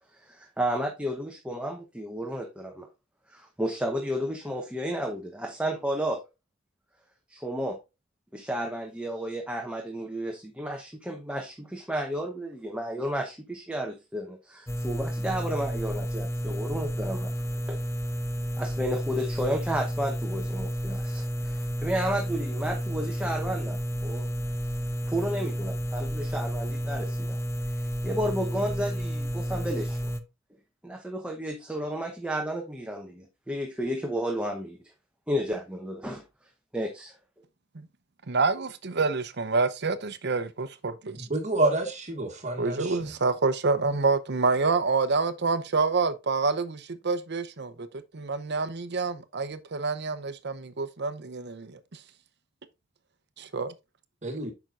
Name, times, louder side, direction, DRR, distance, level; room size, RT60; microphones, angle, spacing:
voice 1, 0.1-2.9 3.3-6.2 7.3-7.8 8.3-17.4 17.7-17.8 18.6-24.3 25.1-27.4 27.7-30.1 30.8-34.8 35.3-36.2 36.7-37.2, equal, 5° right, 1.0 m, -32 dB
sound 1, 14.7-30.2, equal, 15° left, 0.7 m, -31 dB
voice 2, 38.3-41.3 42.6-47.9 48.1-52.0 53.4-53.7, right 4 dB, 55° right, 0.8 m, -27 dB
voice 3, 41.3-43.0 54.2-54.5, right 2 dB, 35° right, 1.7 m, -28 dB
8.9 x 5.9 x 2.5 m
head